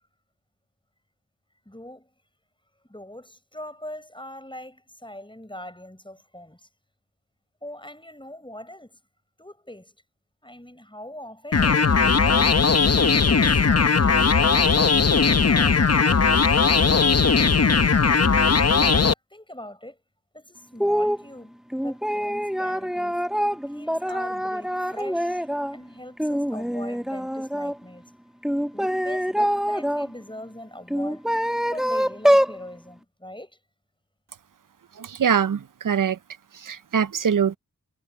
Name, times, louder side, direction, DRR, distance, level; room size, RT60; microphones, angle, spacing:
voice 1, 1.6-2.1 2.9-6.7 7.6-9.0 9.4-9.9 10.4-12.5 13.2-15.0 15.5-17.3 17.5-17.9 18.7-20.0 20.3-23.2 23.7-28.0 28.7-31.2 31.7-33.6, left 1 dB, 15° left, 6.1 m, -42 dB
sound 1, 11.5-19.1, left 5 dB, 45° left, 0.8 m, -18 dB
sound 2, 20.8-21.2 21.7-25.8 26.2-27.7 28.4-30.1 30.9-32.6, equal, ahead, 1.3 m, -24 dB
voice 2, 35.0-36.2 36.5-37.6, right 7 dB, 65° right, 0.6 m, -23 dB
wide cardioid pair, 55°, 34 cm